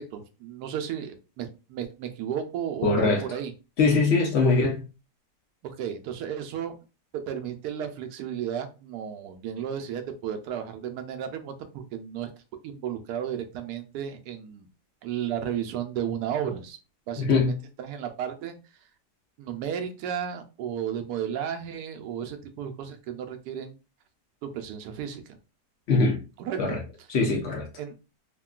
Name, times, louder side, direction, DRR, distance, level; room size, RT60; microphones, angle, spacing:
voice 1, 0.0-3.5 4.5-4.6 5.6-6.7 7.1-12.3 12.6-14.7 15.0-16.8 17.1-18.6 19.4-23.8 24.4-25.2 26.4-26.8 27.8-27.9, right 9 dB, 75° right, 1.1 m, -33 dB
voice 2, 2.8-3.2 3.8-4.8 17.2-17.5 25.9-26.2 26.6-26.8 27.1-27.6, left 3 dB, 65° left, 0.6 m, -22 dB
3.6 x 2.2 x 2.3 m
omnidirectional pair, 1.9 m